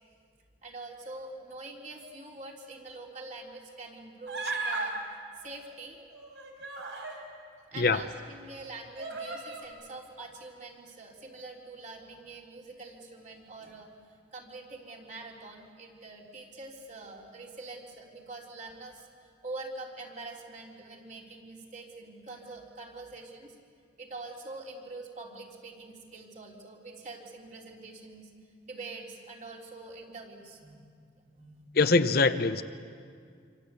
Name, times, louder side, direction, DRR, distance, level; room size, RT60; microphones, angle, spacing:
voice 1, 0.6-5.0 5.4-6.0 7.7-13.9 14.3-19.1 19.4-23.6 24.0-28.3 28.7-31.6, right 2 dB, 40° right, 0 dB, 3.6 m, -45 dB
Human voice, 4.3-4.9 6.1-7.2 8.0-8.1 9.0-9.7, right 3 dB, 70° right, 4.8 m, -35 dB
voice 2, 31.8-32.6, left 3 dB, 50° left, 10 dB, 0.8 m, -23 dB
26.5 x 26.5 x 8.3 m, 2.2 s
head